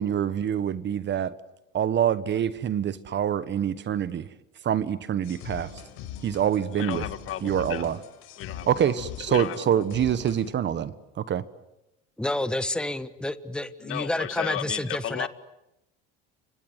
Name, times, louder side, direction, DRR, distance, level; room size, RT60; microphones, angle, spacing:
voice 1, 0.0-1.3 1.7-4.3 4.6-5.7 6.2-7.0 7.4-8.0 8.7-11.4, right 9 dB, 40° right, 15 dB, 1.3 m, -26 dB
sound 1, 5.2-10.5, left 10 dB, 70° left, 4.5 m, -42 dB
voice 2, 6.7-7.9 8.4-9.8 13.8-15.3, left 11 dB, 45° left, 11 dB, 1.9 m, -34 dB
voice 3, 12.2-15.3, left 1 dB, 5° left, 12 dB, 1.3 m, -29 dB
29.0 x 25.5 x 8.1 m, 0.89 s
supercardioid pair, 110°, 29 cm